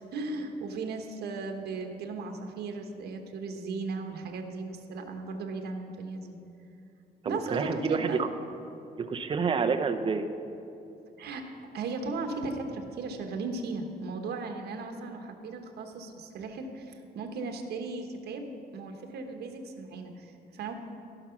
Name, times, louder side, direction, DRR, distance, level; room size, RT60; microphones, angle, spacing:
voice 1, 0.0-6.4 7.2-8.2 11.2-11.4 11.7-20.7, right 3 dB, 80° right, 5 dB, 1.2 m, -36 dB
voice 2, 7.2-8.3 9.1-10.3, right 5 dB, 30° right, 7 dB, 0.6 m, -28 dB
16.0 x 5.9 x 5.8 m, 2.8 s
cardioid pair, 145°, 17 cm